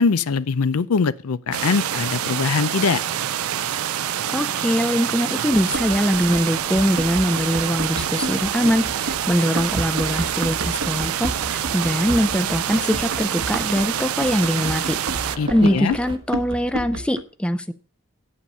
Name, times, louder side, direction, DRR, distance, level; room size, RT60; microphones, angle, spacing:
voice 1, 0.0-3.0 15.4-16.0, left 5 dB, 90° left, 0.5 m, -22 dB
sound 1, 1.5-16.2, right 3 dB, 20° right, 0.8 m, -40 dB
sound 2, 1.5-15.4, right 11 dB, 90° right, 0.5 m, -26 dB
voice 2, 4.3-15.0 15.5-17.7, equal, 5° left, 0.4 m, -22 dB
Run, 5.5-17.2, right 2 dB, 70° right, 1.1 m, -32 dB
8.8 x 8.5 x 5.4 m
head